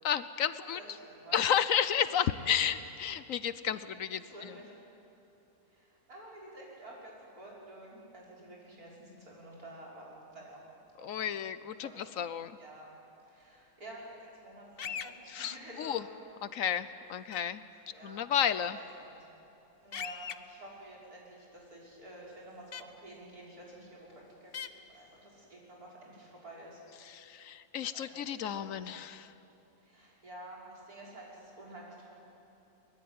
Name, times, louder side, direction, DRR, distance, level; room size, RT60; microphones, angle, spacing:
voice 1, 0.0-0.8 1.3-4.5 11.0-12.6 15.3-16.0 16.4-17.6 18.0-18.8 27.0-29.3, left 9 dB, 70° left, 14 dB, 1.1 m, -32 dB
voice 2, 0.6-1.4 3.8-4.7 5.7-10.6 11.0-11.4 11.8-12.0 12.6-12.9 13.2-16.1 17.9-18.2 18.7-19.2 19.8-26.8 27.9-28.3 28.5-28.8 29.8-32.1, right 1 dB, 85° right, -4 dB, 6.1 m, -50 dB
sound 1, 14.8-15.1 17.3-17.4 19.9-20.3 22.7-22.8 24.5-24.7, left 7 dB, 50° left, 0.8 m, -38 dB
23.5 x 21.0 x 9.6 m, 2.9 s
omnidirectional pair, 1.5 m